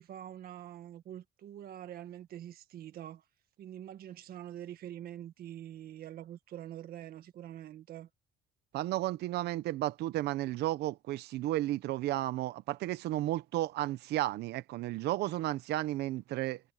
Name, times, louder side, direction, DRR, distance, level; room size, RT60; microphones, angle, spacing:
voice 1, 0.0-3.2 3.6-8.1, right 11 dB, 65° right, 1.7 m, -45 dB
voice 2, 8.7-16.6, right 15 dB, 80° right, 1.0 m, -33 dB
cardioid pair, 110°, 17 cm